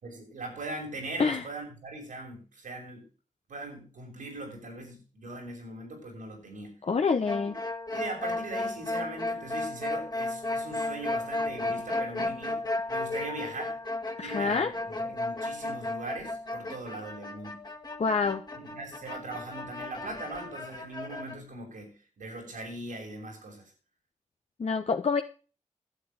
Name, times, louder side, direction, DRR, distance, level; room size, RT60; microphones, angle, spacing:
voice 1, 0.0-3.0 3.5-6.8 7.4-7.5 7.9-13.7 14.2-17.6 18.6-23.7, right 2 dB, 90° right, 0 dB, 6.8 m, -40 dB
voice 2, 6.8-7.6 14.2-14.7 18.0-18.4 24.6-25.2, left 5 dB, 55° left, 4 dB, 1.1 m, -27 dB
sound 1, 7.3-21.3, left 2 dB, 30° left, 2.0 m, -34 dB
11.5 x 8.7 x 7.5 m, 0.38 s
cardioid pair, 60°, 13 cm